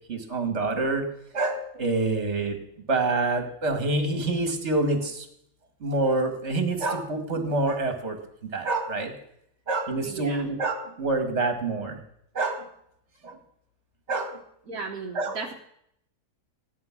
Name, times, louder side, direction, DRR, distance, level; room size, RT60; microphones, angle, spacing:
voice 1, 0.1-1.0 1.3-2.6 2.9-5.3 5.8-8.2 8.5-9.1 9.7-12.0 12.3-12.7 13.2-13.4 14.1-14.4 15.2-15.4, right 2 dB, 45° right, 5 dB, 2.4 m, -26 dB
voice 2, 10.0-10.5 14.7-15.5, right 4 dB, 65° right, -1 dB, 1.7 m, -35 dB
15.5 x 11.0 x 6.1 m, 0.72 s
omnidirectional pair, 1.7 m